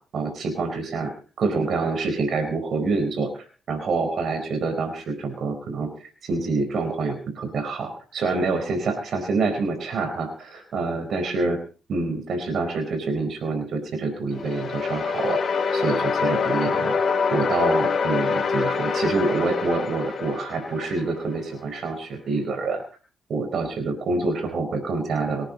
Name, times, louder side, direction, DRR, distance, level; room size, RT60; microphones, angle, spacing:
voice 1, 0.1-1.1 1.4-11.6 11.9-17.0 17.3-22.8 23.3-25.5, right 3 dB, 60° right, 7 dB, 4.4 m, -26 dB
sound 1, 14.3-21.3, left 5 dB, 45° left, 5.0 m, -25 dB
25.0 x 10.0 x 4.2 m, 0.39 s
cardioid pair, 90°, 0 cm